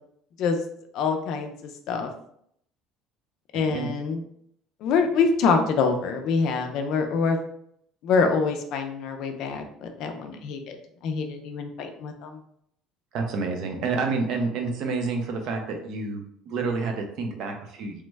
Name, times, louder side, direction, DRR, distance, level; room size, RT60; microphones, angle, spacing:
voice 1, 0.9-1.5 1.9-2.1 3.5-4.2 4.8-7.4 8.0-10.8 11.0-12.4, left 5 dB, 55° left, 5 dB, 0.4 m, -25 dB
voice 2, 3.5-3.9 13.1-18.0, right 4 dB, 55° right, 4 dB, 0.5 m, -29 dB
3.1 x 2.1 x 3.3 m, 0.69 s
cardioid pair, 165°, 0 cm